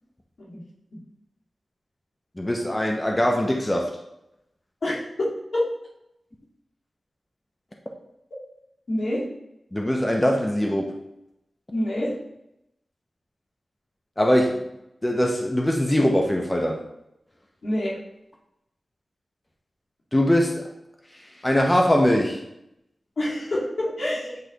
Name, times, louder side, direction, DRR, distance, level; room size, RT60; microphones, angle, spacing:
voice 1, 2.4-3.9 9.7-11.0 14.2-14.7 15.0-16.8 20.1-20.7 21.1-22.4, equal, 20° left, 1 dB, 0.7 m, -22 dB
voice 2, 8.9-9.2 11.7-12.2 17.6-18.0 23.2-24.3, left 1 dB, 75° left, -7 dB, 2.4 m, -26 dB
8.1 x 3.2 x 3.8 m, 0.85 s
wide cardioid pair, 85°, 0 cm